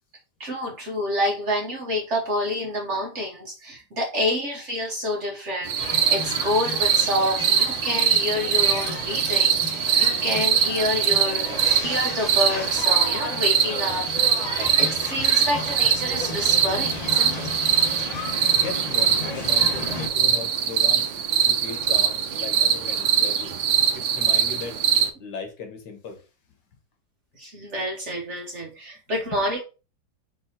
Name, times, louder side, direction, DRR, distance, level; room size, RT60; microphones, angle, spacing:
voice 1, 0.4-11.5 11.8-17.5 27.4-29.6, left 1 dB, 50° right, 1.0 m, -28 dB
sound 1, 5.7-25.1, right 8 dB, 85° right, 1.4 m, -22 dB
sound 2, 5.8-20.1, left 2 dB, 35° left, 0.6 m, -34 dB
voice 2, 18.5-21.1 21.5-23.5 23.9-24.8 25.2-26.2 29.3-29.4, left 5 dB, 70° left, 1.5 m, -37 dB
4.6 x 3.8 x 2.8 m
omnidirectional pair, 2.0 m